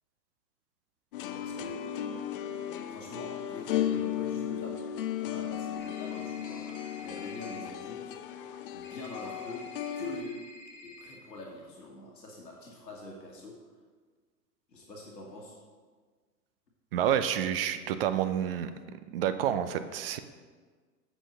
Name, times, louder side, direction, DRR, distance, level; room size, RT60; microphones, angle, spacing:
sound 1, 1.1-10.2, left 10 dB, 35° left, 0.4 m, -35 dB
voice 1, 1.4-1.8 2.9-4.8 5.2-6.7 7.0-8.2 8.7-9.7 9.9-10.4 10.8-13.6 14.7-15.6, left 2 dB, 80° left, -2 dB, 1.6 m, -44 dB
sound 2, 5.8-7.6 8.8-11.2, left 1 dB, 55° left, 1.6 m, -50 dB
voice 2, 16.9-18.7 19.1-20.2, right 10 dB, 35° right, 11 dB, 0.5 m, -29 dB
8.0 x 6.1 x 6.4 m, 1.5 s
figure-of-eight pair, 100°, 49 cm